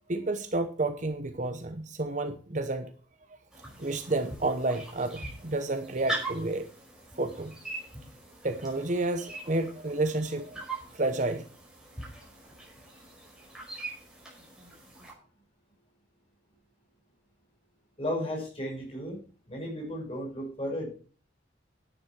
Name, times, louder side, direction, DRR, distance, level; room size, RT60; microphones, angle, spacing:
voice 1, 0.1-2.9 3.8-6.7 7.2-7.6 8.4-10.6 10.9-11.4, right 2 dB, 40° right, 0.9 m, -30 dB
sound 1, 3.5-15.1, right 2 dB, 5° right, 5.2 m, -42 dB
voice 2, 18.0-19.2 19.5-20.9, equal, 30° left, 5.7 m, -34 dB
11.0 x 9.7 x 6.0 m
head